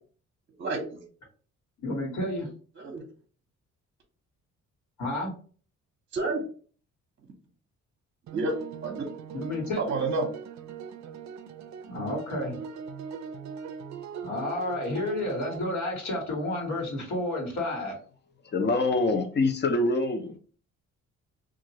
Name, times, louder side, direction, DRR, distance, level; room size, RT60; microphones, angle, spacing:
voice 1, 0.6-1.0 2.8-3.0 6.1-6.4 8.3-9.0 9.8-10.3, right 3 dB, 40° right, 0.8 m, -29 dB
voice 2, 1.8-2.5 5.0-5.3 9.3-9.8 11.9-12.6 14.2-18.0, left 1 dB, 70° left, 1.4 m, -31 dB
sound 1, 8.3-15.6, right 7 dB, 65° right, 0.5 m, -40 dB
voice 3, 18.5-20.4, left 2 dB, 35° left, 0.7 m, -25 dB
2.9 x 2.5 x 2.8 m
cardioid pair, 90°, 30 cm